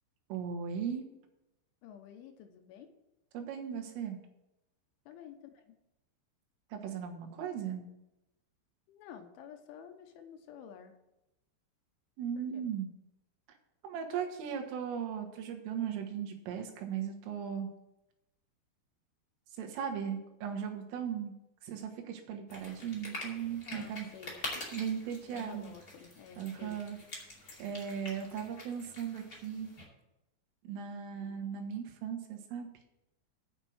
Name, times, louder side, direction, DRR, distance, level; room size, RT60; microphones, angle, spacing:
voice 1, 0.3-1.1 3.3-4.2 6.7-7.9 12.2-12.9 13.8-17.7 19.6-21.4 21.6-24.2 24.7-25.7 26.4-27.0 27.6-29.7 30.7-32.7, right 8 dB, 85° right, 3 dB, 4.0 m, -37 dB
voice 2, 1.8-2.9 5.1-5.6 8.9-10.9 12.4-12.7 23.7-24.4 25.3-26.8 31.1-31.4, left 8 dB, 80° left, 6 dB, 3.2 m, -51 dB
sound 1, 22.5-29.8, left 2 dB, 30° left, 1.7 m, -46 dB
9.0 x 6.4 x 7.9 m, 0.92 s
omnidirectional pair, 5.7 m